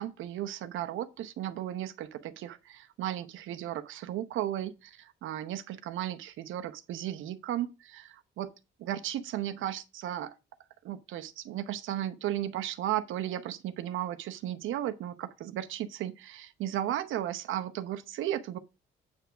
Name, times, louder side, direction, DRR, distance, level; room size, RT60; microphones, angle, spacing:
voice 1, 0.0-8.5 8.8-10.3 10.8-18.6, right 12 dB, 85° right, 0.8 m, -35 dB
9.0 x 3.5 x 6.1 m
cardioid pair, 90°, 20 cm